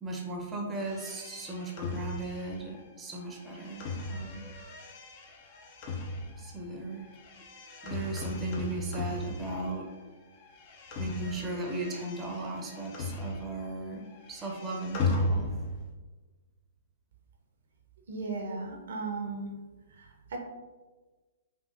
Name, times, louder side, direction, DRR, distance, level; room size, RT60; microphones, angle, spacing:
voice 1, 0.0-4.4 6.4-7.1 7.8-9.9 11.0-15.5, right 2 dB, 15° right, 0 dB, 0.7 m, -37 dB
sound 1, 0.8-10.0 10.3-13.8 14.0-15.9, left 2 dB, 40° left, 0.5 m, -37 dB
voice 2, 18.1-19.5 19.9-20.4, right 3 dB, 60° right, 1 dB, 0.7 m, -36 dB
5.1 x 2.6 x 2.5 m, 1.3 s
figure-of-eight pair, 115°, 0 cm